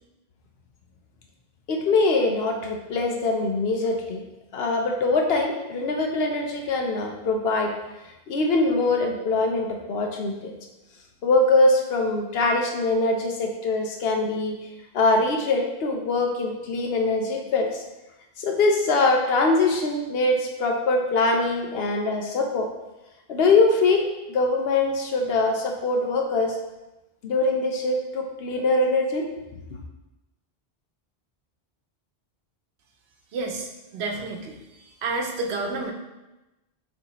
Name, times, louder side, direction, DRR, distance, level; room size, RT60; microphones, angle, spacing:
voice 1, 1.7-4.2 4.5-7.7 8.3-10.5 11.2-14.5 14.9-17.8 18.4-22.7 23.3-26.6 27.2-29.2, left 3 dB, 70° left, 2 dB, 0.9 m, -23 dB
voice 2, 33.3-35.9, right 3 dB, 80° right, 2 dB, 0.9 m, -30 dB
6.2 x 2.7 x 2.9 m, 1.0 s
omnidirectional pair, 1.1 m